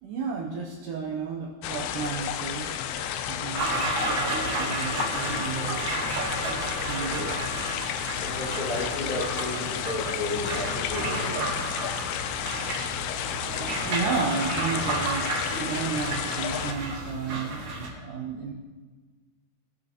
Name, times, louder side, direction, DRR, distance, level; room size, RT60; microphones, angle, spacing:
voice 1, 0.0-2.7 3.3-5.8 6.8-7.5 13.8-18.5, right 5 dB, 90° right, -1 dB, 1.8 m, -33 dB
sound 1, 1.6-16.7, left 9 dB, 80° left, 2.3 m, -32 dB
sound 2, 3.6-17.9, right 2 dB, 65° right, 1.5 m, -32 dB
voice 2, 6.4-7.3 8.1-11.5, left 2 dB, 30° left, -9 dB, 2.9 m, -33 dB
18.0 x 6.4 x 2.9 m, 1.4 s
omnidirectional pair, 4.7 m